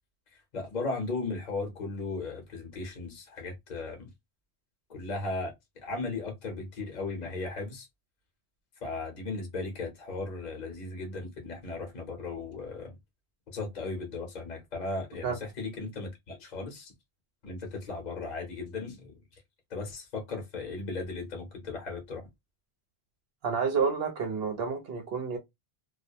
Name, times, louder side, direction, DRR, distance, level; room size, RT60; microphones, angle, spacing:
voice 1, 0.3-4.1 4.9-5.5 5.8-7.9 8.8-13.0 13.5-16.9 17.4-19.4 19.7-22.3, left 3 dB, 45° left, 0.9 m, -36 dB
voice 2, 23.4-25.4, right 5 dB, 65° right, 0.9 m, -29 dB
2.4 x 2.1 x 2.6 m
omnidirectional pair, 1.1 m